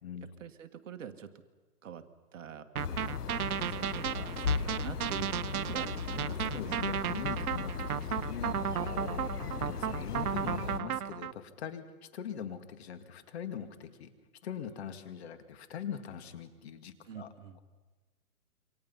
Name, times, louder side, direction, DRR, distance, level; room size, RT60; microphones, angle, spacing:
voice 1, 0.4-1.3 1.8-2.0 2.3-3.2 3.7-6.8 17.0-17.6, right 7 dB, 55° right, 8 dB, 1.8 m, -45 dB
sound 1, 2.7-10.8, left 6 dB, 85° left, 1.4 m, -37 dB
sound 2, 2.8-11.3, right 10 dB, 70° right, 0.7 m, -34 dB
voice 2, 6.5-14.1 14.4-17.6, left 8 dB, 45° left, 9 dB, 2.1 m, -42 dB
27.5 x 25.0 x 5.7 m, 1.3 s
hypercardioid pair, 150°, 46 cm